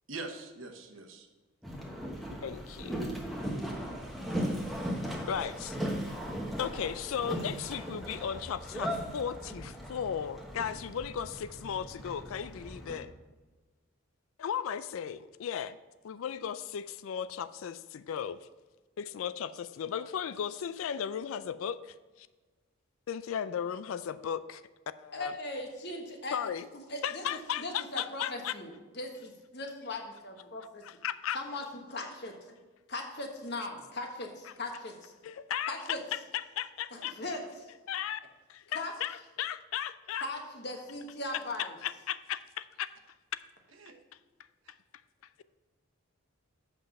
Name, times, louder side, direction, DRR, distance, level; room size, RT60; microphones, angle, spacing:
voice 1, 0.1-1.3 43.8-43.9, right 3 dB, 70° right, 5 dB, 1.1 m, -42 dB
Boat Water vehicle, 1.6-13.0, equal, ahead, 1.1 m, -38 dB
voice 2, 2.4-3.0 5.3-5.8 6.6-13.1 14.4-15.8 16.0-18.5 19.0-22.3 23.1-24.6 25.0-25.3 26.3-26.6 27.0-28.5 30.8-31.4 35.2-37.1 37.9-38.2 38.5-40.3 41.6-42.9, left 8 dB, 75° left, 15 dB, 0.3 m, -36 dB
voice 3, 25.1-26.4 26.7-30.8 31.3-32.3 32.9-35.1 35.7-36.0 36.9-37.7 38.7-38.9 40.2-41.7, left 2 dB, 50° left, 3 dB, 1.3 m, -39 dB
7.7 x 6.1 x 5.3 m, 1.3 s
head